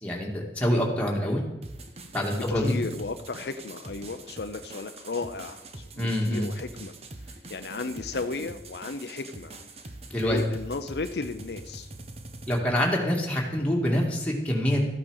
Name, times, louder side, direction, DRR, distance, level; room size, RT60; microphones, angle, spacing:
voice 1, 0.0-1.4 2.1-2.8 6.0-6.5 10.1-10.4 12.5-14.8, equal, 10° left, -3 dB, 2.3 m, -26 dB
sound 1, 1.6-12.6, right 2 dB, 35° right, 1.1 m, -44 dB
voice 2, 2.3-6.9 7.3-9.5 10.2-11.9, left 3 dB, 70° left, 8 dB, 0.6 m, -34 dB
14.0 x 8.8 x 6.5 m, 0.96 s
head